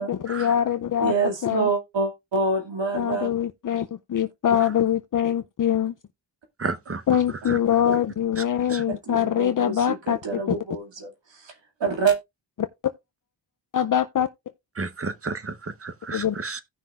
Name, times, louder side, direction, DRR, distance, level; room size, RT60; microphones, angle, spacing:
voice 1, 0.0-1.1 1.4-1.7 2.9-5.9 7.1-10.2 10.5-10.6 13.7-14.3 16.1-16.4, left 9 dB, 45° left, 0.5 m, -23 dB
voice 2, 1.0-3.3 8.9-11.5 11.8-12.2, right 4 dB, 80° right, 2.4 m, -26 dB
voice 3, 6.6-7.2 7.4-7.6 8.4-8.5 8.7-8.8 14.8-16.6, right 4 dB, 30° right, 0.9 m, -32 dB
16.5 x 5.9 x 2.4 m
wide cardioid pair, 80°, 43 cm